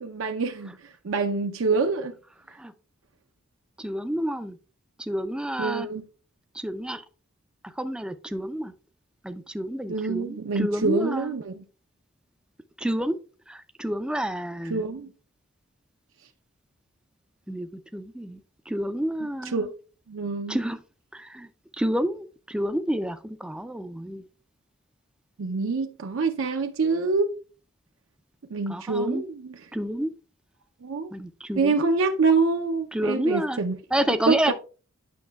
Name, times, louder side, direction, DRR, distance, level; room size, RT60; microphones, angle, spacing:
voice 1, 0.0-0.7 1.0-2.1 5.6-6.0 9.9-11.6 14.7-15.1 19.5-19.7 20.1-20.6 25.4-27.3 28.5-29.4 30.8-31.1 31.6-33.8 34.3-34.5, right 4 dB, 70° right, 0.5 m, -25 dB
voice 2, 3.8-4.6 5.0-5.9 6.5-7.0 7.6-8.7 9.2-11.3 12.8-13.2 13.5-14.8 17.5-18.4 18.7-19.7 20.5-20.8 21.1-21.5 21.8-24.2 28.7-29.2 29.7-30.1 31.1-31.9 32.9-33.6 33.9-34.5, equal, 5° right, 0.3 m, -29 dB
9.4 x 6.1 x 2.3 m
head